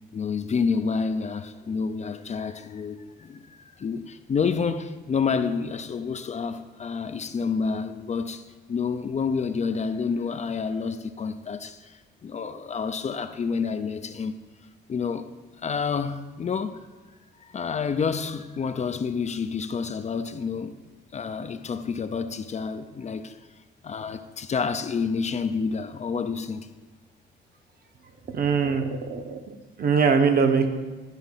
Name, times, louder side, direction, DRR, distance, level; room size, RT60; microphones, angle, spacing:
voice 1, 0.1-8.4 8.7-11.9 12.2-14.3 14.9-15.3 15.6-16.8 17.5-20.8 21.1-23.4 23.8-26.7, left 5 dB, 35° left, 0.5 m, -29 dB
voice 2, 28.3-30.7, right 5 dB, 50° right, 1.0 m, -22 dB
11.0 x 4.1 x 5.6 m
cardioid pair, 90°, 20 cm